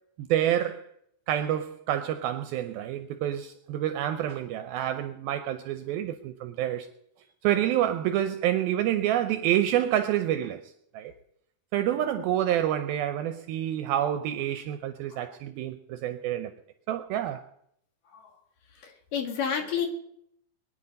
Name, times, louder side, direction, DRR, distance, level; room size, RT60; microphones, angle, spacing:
voice 1, 0.2-0.8 1.3-6.9 7.4-10.6 10.9-11.1 11.7-16.5 16.9-17.4, right 11 dB, 80° right, 2.2 m, -28 dB
voice 2, 18.8-19.9, left 7 dB, 60° left, 3.0 m, -30 dB
22.5 x 9.8 x 5.2 m
omnidirectional pair, 4.9 m